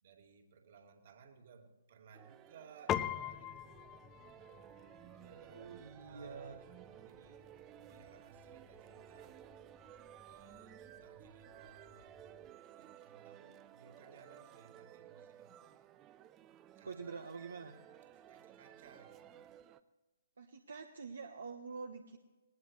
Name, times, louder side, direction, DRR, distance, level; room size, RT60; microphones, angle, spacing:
voice 1, 0.0-3.9 4.4-4.5 5.1-9.4 10.2-15.5 16.8-17.0 17.9-19.3, right 6 dB, 50° right, 3 dB, 2.5 m, -61 dB
sound 1, 2.1-19.8, right 11 dB, 20° right, 0.6 m, -57 dB
Piano, 2.9-12.5, left 11 dB, 20° left, 0.6 m, -45 dB
voice 2, 5.5-6.6 16.8-17.7 20.4-22.2, right 5 dB, 65° right, 6 dB, 1.1 m, -46 dB
20.0 x 19.5 x 3.2 m, 1.2 s
figure-of-eight pair, 125°, 0 cm